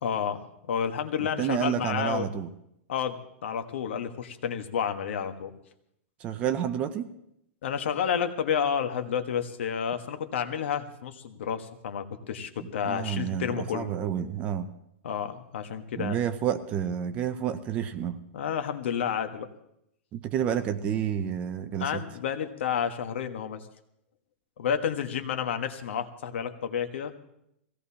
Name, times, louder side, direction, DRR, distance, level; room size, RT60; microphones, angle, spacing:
voice 1, 0.0-2.3 2.9-5.5 7.6-13.9 15.0-16.2 18.3-19.5 21.8-23.6 24.6-27.1, left 8 dB, 60° left, 8 dB, 1.3 m, -30 dB
voice 2, 1.4-2.5 6.2-7.1 12.8-14.7 16.0-18.2 20.1-22.0, right 9 dB, 15° right, 10 dB, 0.4 m, -29 dB
22.5 x 16.5 x 2.8 m, 0.78 s
supercardioid pair, 180°, 7 cm